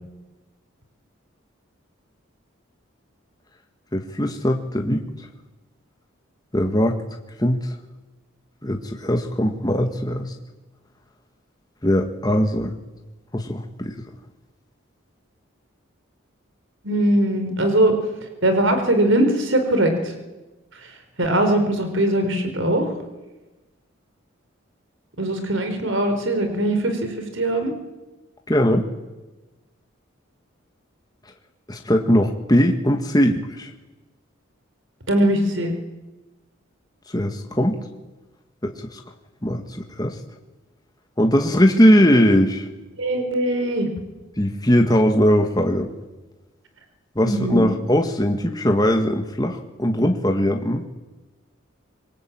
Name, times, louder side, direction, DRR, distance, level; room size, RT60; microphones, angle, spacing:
voice 1, 3.9-5.1 6.5-7.0 7.4-7.7 8.6-10.3 11.8-12.7 13.3-13.9 28.5-28.9 31.7-33.7 37.1-37.8 38.6-39.0 39.4-39.6 40.0-40.2 41.2-42.7 44.4-45.9 47.2-50.8, equal, 20° left, 3 dB, 1.8 m, -20 dB
voice 2, 16.8-17.9 18.4-20.1 20.7-22.9 25.2-27.7 35.1-35.7 43.0-43.9 47.2-47.6, right 1 dB, 65° right, 6 dB, 4.4 m, -21 dB
26.0 x 22.5 x 8.9 m, 1.1 s
head